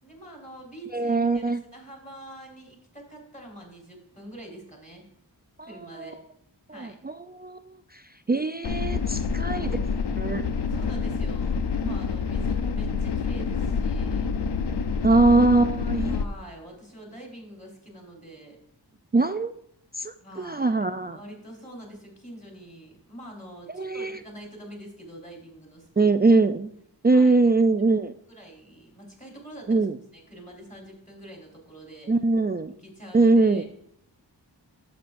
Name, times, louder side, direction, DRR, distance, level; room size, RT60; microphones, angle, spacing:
voice 1, 0.0-5.1 5.6-6.2 6.7-7.0 9.4-10.2 10.7-14.3 15.1-15.2 15.6-18.6 20.2-26.1 27.1-27.4 28.3-29.9 30.1-32.1 32.8-33.6, right 1 dB, 15° left, 0 dB, 4.1 m, -45 dB
voice 2, 0.9-1.6 5.9-6.1 6.7-8.0 8.3-9.7 10.2-10.4 11.8-12.0 15.0-16.2 19.1-19.5 19.9-21.2 23.7-24.2 26.0-26.7 27.0-28.1 29.7-30.0 32.1-32.7 33.1-33.6, right 3 dB, 25° right, 8 dB, 0.4 m, -22 dB
sound 1, 8.6-16.2, left 5 dB, 65° left, 0.7 m, -27 dB
11.5 x 8.0 x 2.6 m, 0.70 s
wide cardioid pair, 60°, 44 cm